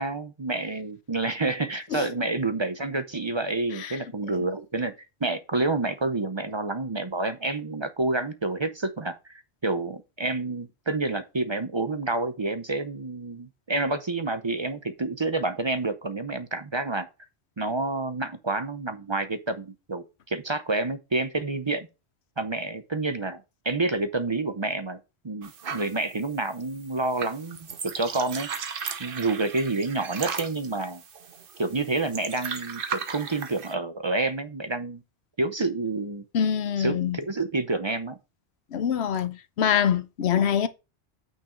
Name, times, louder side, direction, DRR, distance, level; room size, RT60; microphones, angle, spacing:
voice 1, 0.0-4.9 5.2-17.1 17.6-21.9 22.4-25.0 25.2-27.6 27.8-28.5 29.0-31.0 31.6-35.0 35.4-36.2 36.8-38.2, right 2 dB, 30° right, 0.6 m, -28 dB
sound 1, 25.4-33.7, right 6 dB, 55° right, 1.0 m, -36 dB
voice 2, 36.3-37.2 38.7-40.7, left 8 dB, 75° left, 1.0 m, -24 dB
8.8 x 5.5 x 3.8 m
omnidirectional pair, 1.1 m